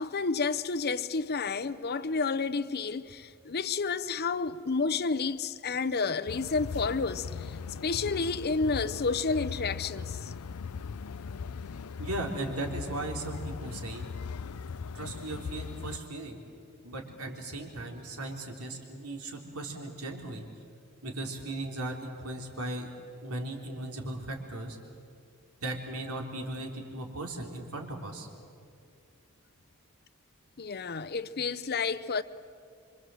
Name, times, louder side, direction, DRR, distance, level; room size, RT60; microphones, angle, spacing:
voice 1, 0.0-10.3 30.6-32.2, left 4 dB, 45° left, 0.7 m, -30 dB
sound 1, 6.3-16.0, left 5 dB, 85° left, 0.6 m, -39 dB
voice 2, 12.0-14.0 14.9-16.4 16.8-20.5 21.0-22.9 23.2-24.8 25.6-28.3, right 2 dB, 85° right, 3.6 m, -37 dB
26.5 x 25.0 x 7.8 m
head